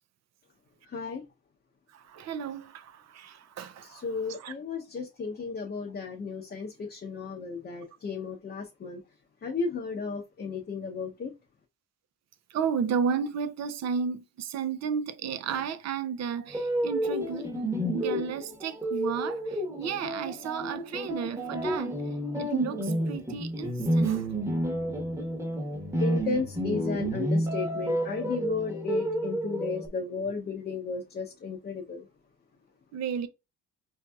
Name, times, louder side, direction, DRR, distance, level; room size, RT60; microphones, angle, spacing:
voice 1, 0.9-1.2 3.8-9.0 9.4-11.3 26.0-32.1, left 4 dB, 35° left, 0.7 m, -34 dB
voice 2, 1.9-4.0 4.4-4.5 12.5-17.5 17.9-22.0 22.4-24.3 32.9-33.3, right 6 dB, 60° right, 0.6 m, -33 dB
sound 1, 16.5-29.9, right 1 dB, 10° right, 1.1 m, -30 dB
4.5 x 2.7 x 2.3 m
cardioid pair, 90°, 30 cm